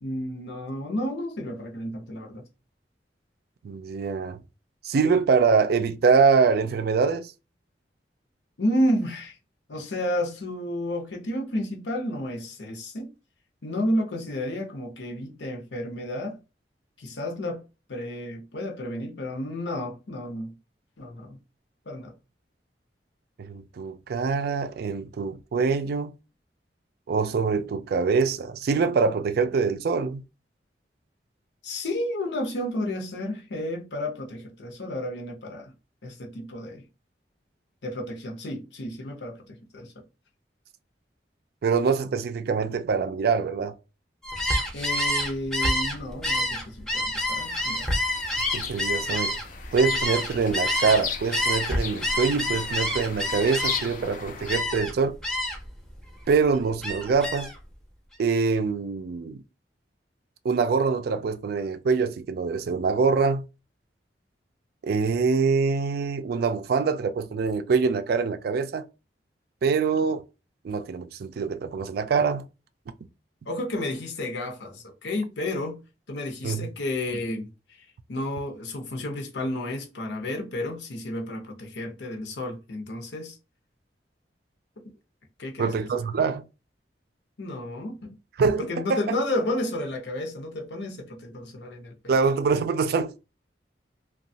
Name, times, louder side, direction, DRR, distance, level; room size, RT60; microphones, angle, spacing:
voice 1, 0.0-2.4 8.6-9.4 9.7-13.1 13.6-16.4 17.0-17.6 17.9-20.5 21.0-21.4 21.9-22.1 31.6-35.7 36.0-36.8 37.8-40.0 44.7-47.9 73.5-75.8 76.1-77.5 78.1-83.4 85.4-85.7 87.4-88.2 88.6-92.1, left 1 dB, 80° left, 0.7 m, -31 dB
voice 2, 3.6-4.4 4.8-7.3 23.4-26.1 27.1-30.2 41.6-43.8 48.5-49.4 49.7-55.2 56.3-57.5 58.2-59.4 60.4-63.5 64.8-68.8 69.6-70.2 70.6-72.5 76.4-76.7 85.6-86.4 88.4-89.2 92.1-93.2, right 5 dB, 60° right, 0.3 m, -24 dB
Gull seagull, 44.2-51.0 51.3-54.0 54.5-54.9 55.2-55.7 56.1-57.6, left 1 dB, 5° left, 0.6 m, -27 dB
sound 1, 47.4-54.6, left 7 dB, 50° left, 0.4 m, -37 dB
2.9 x 2.3 x 2.6 m
head